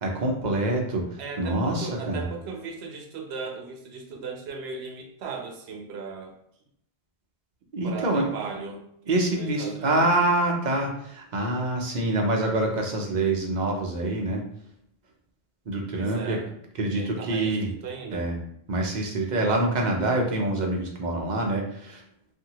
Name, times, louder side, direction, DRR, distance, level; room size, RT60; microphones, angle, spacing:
voice 1, 0.0-1.0 1.4-2.2 7.7-8.3 9.1-14.4 15.7-16.4 16.8-17.7 18.1-18.4 18.7-22.0, right 2 dB, 50° right, 1 dB, 0.6 m, -26 dB
voice 2, 1.2-6.4 7.8-8.8 9.3-10.3 15.9-16.5 17.0-18.3, right 5 dB, 80° right, 2 dB, 0.9 m, -37 dB
2.7 x 2.6 x 2.8 m, 0.73 s
omnidirectional pair, 1.1 m